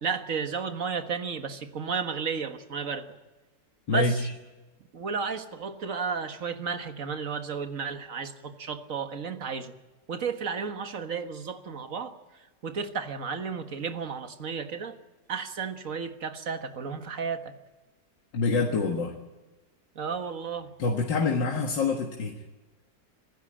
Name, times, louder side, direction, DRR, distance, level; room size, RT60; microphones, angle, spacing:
voice 1, 0.0-3.1 3.9-4.2 4.9-9.7 10.1-12.1 12.6-15.0 15.3-17.5 19.9-20.7, right 5 dB, 50° right, 7 dB, 1.8 m, -33 dB
voice 2, 18.3-19.2 20.8-22.4, left 3 dB, 80° left, 1 dB, 2.4 m, -26 dB
26.0 x 15.0 x 8.9 m, 1.2 s
omnidirectional pair, 2.0 m